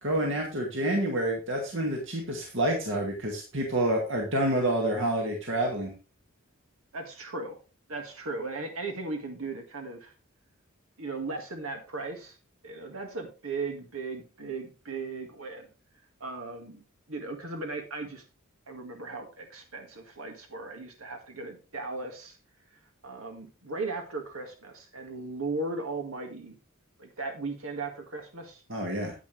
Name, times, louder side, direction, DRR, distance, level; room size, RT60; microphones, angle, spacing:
voice 1, 0.0-5.9 28.7-29.1, right 1 dB, 60° right, 0 dB, 2.1 m, -28 dB
voice 2, 6.9-7.6 7.9-10.1 11.0-12.4 12.6-15.7 16.2-16.8 17.1-18.2 18.7-22.4 23.0-26.6 27.0-28.6, right 3 dB, 80° right, 3 dB, 1.9 m, -37 dB
10.0 x 8.8 x 3.3 m, 0.31 s
head